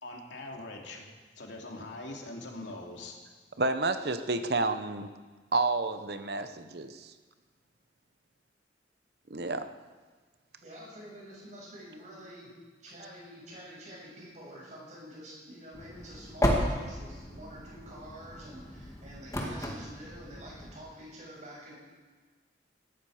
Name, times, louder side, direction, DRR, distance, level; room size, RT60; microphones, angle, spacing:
voice 1, 0.0-1.1 1.4-3.2, left 2 dB, 90° left, 0 dB, 2.9 m, -42 dB
voice 2, 3.6-5.1 5.5-7.1 9.3-9.7, right 3 dB, 60° right, 9 dB, 0.9 m, -30 dB
voice 3, 10.6-12.5 12.8-21.7, equal, 40° right, -4 dB, 6.7 m, -47 dB
sound 1, 15.7-20.8, equal, 20° left, 2.1 m, -34 dB
19.0 x 14.5 x 5.0 m, 1.4 s
head